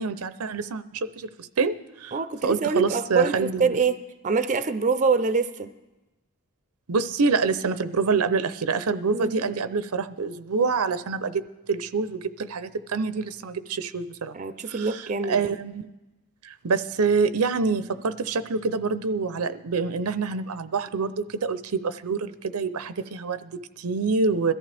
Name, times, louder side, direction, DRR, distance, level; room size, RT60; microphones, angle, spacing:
voice 1, 0.0-2.2 2.4-3.8 6.9-14.4 14.7-15.9 16.4-24.5, right 4 dB, 80° right, 12 dB, 0.6 m, -26 dB
voice 2, 2.1-4.0 4.2-5.7 9.1-9.4 14.3-15.4, right 4 dB, 35° right, 11 dB, 0.5 m, -25 dB
21.5 x 14.0 x 3.4 m, 1.1 s
head